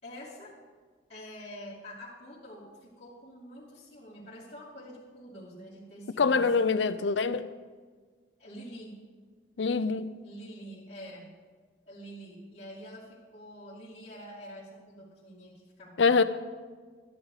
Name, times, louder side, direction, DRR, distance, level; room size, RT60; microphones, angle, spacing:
voice 1, 0.0-0.6 1.1-6.8 8.4-9.0 10.2-11.3 11.8-16.2, equal, 35° left, 2.7 m, -46 dB
voice 2, 6.2-7.5 9.6-10.2 16.0-16.2, left 4 dB, 90° left, 0.6 m, -24 dB
13.0 x 11.0 x 4.9 m
head